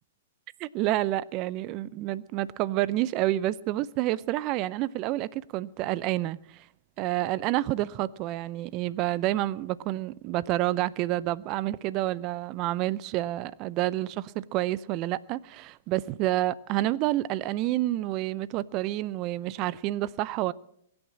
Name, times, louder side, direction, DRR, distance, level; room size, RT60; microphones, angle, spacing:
voice 1, 0.6-6.6 7.0-20.5, right 15 dB, 40° right, 0.5 m, -29 dB
22.0 x 8.7 x 7.4 m
hypercardioid pair, 120°, 0 cm